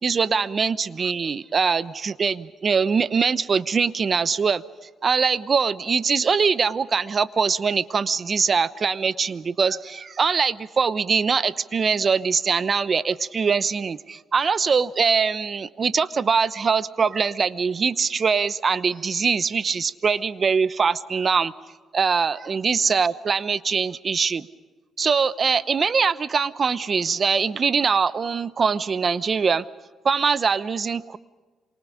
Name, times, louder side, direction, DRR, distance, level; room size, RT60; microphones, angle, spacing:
voice 1, 0.0-4.6 5.0-21.5 21.9-24.5 25.0-29.6 30.0-31.2, right 5 dB, 40° right, 16 dB, 0.9 m, -22 dB
27.5 x 24.5 x 5.1 m, 1.4 s
cardioid pair, 90°, 0 cm